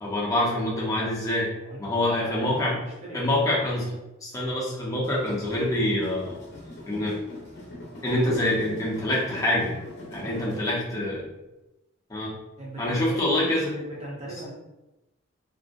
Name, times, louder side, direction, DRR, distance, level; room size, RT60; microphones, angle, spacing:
voice 1, 0.0-1.5 1.8-2.7 3.1-3.9 4.2-6.3 6.8-7.2 8.0-9.7 10.1-11.3 12.1-12.3 12.8-13.7, left 1 dB, 15° left, -5 dB, 0.6 m, -25 dB
voice 2, 1.6-3.2 10.2-10.9 12.6-14.5, right 2 dB, 35° right, -5 dB, 0.7 m, -39 dB
sound 1, 5.0-10.6, left 1 dB, 55° left, 0.6 m, -42 dB
2.5 x 2.0 x 2.5 m, 0.97 s
head